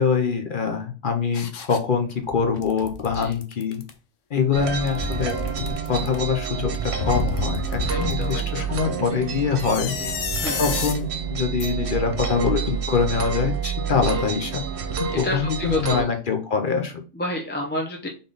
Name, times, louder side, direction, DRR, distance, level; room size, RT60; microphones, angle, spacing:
voice 1, 0.0-3.8 4.3-5.3 5.9-9.9 10.6-14.6 15.1-17.0, left 6 dB, 50° left, 5 dB, 0.7 m, -24 dB
sound 1, 1.3-1.8 2.3-3.9 4.7-6.2 6.7-8.4 9.5-11.0 11.6-11.7, left 6 dB, 80° left, 1.1 m, -31 dB
sound 2, 4.5-16.0, right 7 dB, 65° right, 1.0 m, -28 dB
voice 2, 7.9-8.7 9.9-10.1 10.4-10.7 13.9-14.2 15.1-16.1 17.1-18.1, left 2 dB, 10° left, 0 dB, 0.5 m, -30 dB
3.8 x 3.6 x 3.8 m, 0.35 s
omnidirectional pair, 1.3 m